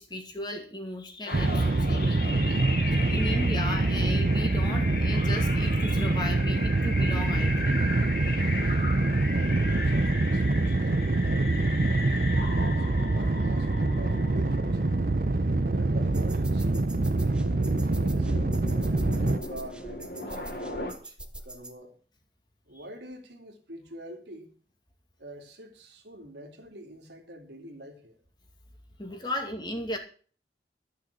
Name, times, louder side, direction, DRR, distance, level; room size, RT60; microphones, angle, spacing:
voice 1, 0.0-2.4 2.9-7.9 10.6-10.8 29.0-30.0, left 1 dB, 25° left, 2.3 m, -35 dB
sound 1, 1.3-20.9, left 2 dB, 55° left, 2.9 m, -38 dB
sound 2, 1.3-19.4, right 2 dB, 50° right, 0.7 m, -25 dB
voice 2, 9.2-11.8 12.4-14.9 15.7-18.6 19.1-21.2 21.4-22.0 22.7-24.5 25.2-28.2 29.2-29.3, right 1 dB, 80° right, 2.7 m, -45 dB
sound 3, 16.0-21.7, right 1 dB, 5° right, 0.9 m, -44 dB
13.0 x 6.5 x 8.3 m
head